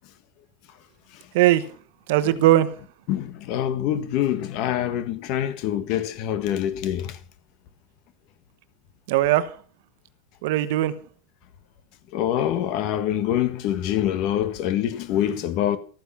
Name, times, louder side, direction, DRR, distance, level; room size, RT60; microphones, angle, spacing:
voice 1, 1.3-1.7 2.1-2.8 9.1-9.6 10.4-11.0, right 14 dB, 65° right, 1.1 m, -19 dB
voice 2, 3.1-7.0 12.1-15.8, left 11 dB, 45° left, 1.5 m, -25 dB
13.5 x 9.6 x 5.7 m
supercardioid pair, 165°, 0 cm